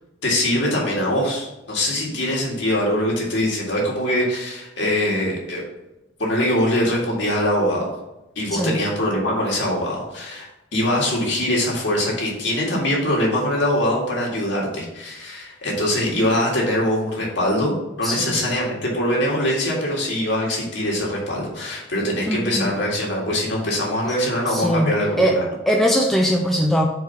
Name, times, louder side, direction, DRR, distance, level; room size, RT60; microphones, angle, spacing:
voice 1, 0.2-5.6 6.2-7.9 8.4-25.4, left 1 dB, 65° left, -3 dB, 1.9 m, -23 dB
voice 2, 18.0-18.4 22.3-22.7 24.5-26.9, equal, ahead, 0 dB, 0.4 m, -21 dB
4.7 x 4.6 x 5.6 m, 0.94 s
head